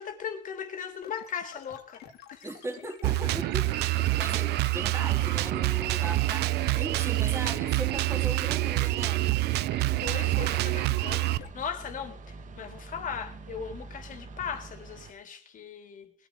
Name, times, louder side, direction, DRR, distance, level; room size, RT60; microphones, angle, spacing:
voice 1, 0.0-2.0 2.3-2.5 10.0-16.1, left 7 dB, 50° left, 3.7 m, -38 dB
sound 1, 1.0-11.5, left 9 dB, 80° left, 4.0 m, -49 dB
voice 2, 2.4-9.2, right 1 dB, 15° right, 3.7 m, -39 dB
Drum kit, 3.0-11.4, right 18 dB, 80° right, 0.7 m, -26 dB
sound 2, 6.9-15.1, right 3 dB, 50° right, 2.4 m, -46 dB
20.5 x 13.5 x 5.0 m
cardioid pair, 110°, 17 cm